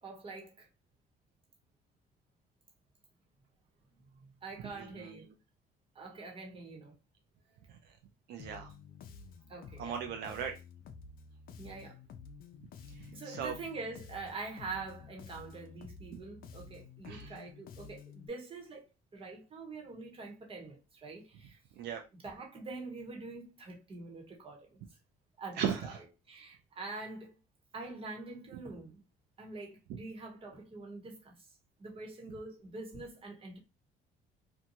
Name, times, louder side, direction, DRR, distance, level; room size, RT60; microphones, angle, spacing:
voice 1, 0.0-0.7 4.4-5.2 5.9-6.9 9.5-10.0 11.6-12.0 13.1-18.8 19.1-21.6 22.2-24.8 25.4-26.0 26.3-27.4 27.7-29.0 29.4-31.5 31.8-33.6, right 3 dB, 35° right, 1.1 m, -45 dB
voice 2, 4.6-5.2 7.7-7.8 8.3-8.7 9.8-10.6 12.9-13.5 16.1-16.2 17.0-17.3 21.8-22.0 25.6-26.0, right 8 dB, 75° right, 0.5 m, -38 dB
Bass guitar, 8.4-18.3, left 5 dB, 60° left, 0.5 m, -51 dB
2.6 x 2.2 x 2.8 m
cardioid pair, 110°, 17 cm